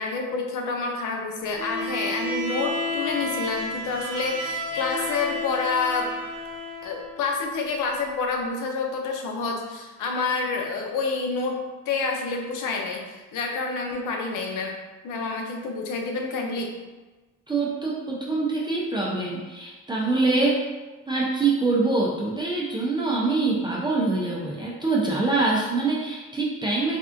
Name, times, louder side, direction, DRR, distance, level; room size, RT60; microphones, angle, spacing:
voice 1, 0.0-6.1 6.8-14.7 15.0-16.7, left 4 dB, 85° left, 2 dB, 0.6 m, -28 dB
Bowed string instrument, 1.5-7.2, left 1 dB, 80° right, 0.8 m, -31 dB
voice 2, 17.5-20.6 21.1-27.0, right 3 dB, 15° right, -4 dB, 0.5 m, -24 dB
3.4 x 2.3 x 2.5 m, 1.2 s
cardioid pair, 90°, 30 cm